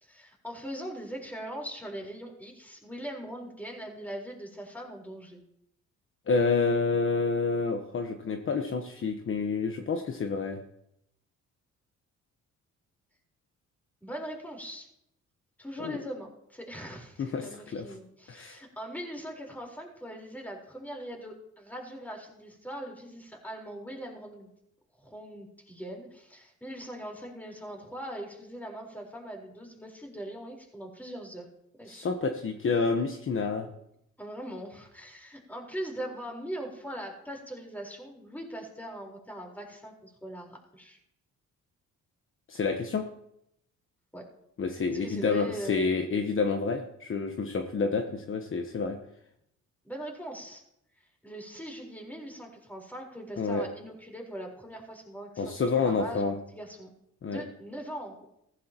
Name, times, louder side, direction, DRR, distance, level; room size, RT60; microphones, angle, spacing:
voice 1, 0.0-5.4 14.0-14.9 15.6-24.5 25.0-31.5 31.8-32.1 34.2-41.0 44.1-44.3 44.9-45.9 49.8-50.6 51.2-56.9 57.2-58.3, right 1 dB, 5° left, -1 dB, 4.2 m, -41 dB
voice 2, 6.3-10.6 15.8-16.0 17.2-17.9 18.3-18.6 31.9-33.7 42.5-43.1 44.6-49.0 53.4-53.6 55.4-56.3 57.2-57.4, left 4 dB, 45° left, 5 dB, 1.1 m, -29 dB
16.0 x 15.0 x 3.0 m, 0.77 s
cardioid pair, 90°, 30 cm